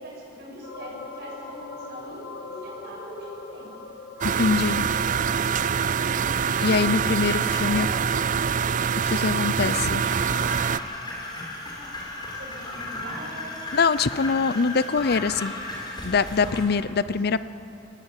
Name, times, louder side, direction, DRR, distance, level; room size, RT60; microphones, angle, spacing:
voice 1, 0.0-3.7 7.6-8.1 12.3-13.7, right 1 dB, 60° right, -4 dB, 6.8 m, -41 dB
sound 1, 0.6-12.4 12.8-12.9, left 3 dB, 80° left, 1.7 m, -44 dB
sound 2, 4.2-10.8, right 7 dB, 45° right, 0.4 m, -24 dB
voice 2, 4.4-4.9 6.6-7.9 9.0-10.0 13.7-15.5 16.0-17.4, left 5 dB, 60° left, 16 dB, 0.6 m, -23 dB
sound 3, 9.9-16.7, left 2 dB, 25° left, 4.8 m, -35 dB
23.5 x 17.5 x 9.0 m, 3.0 s
head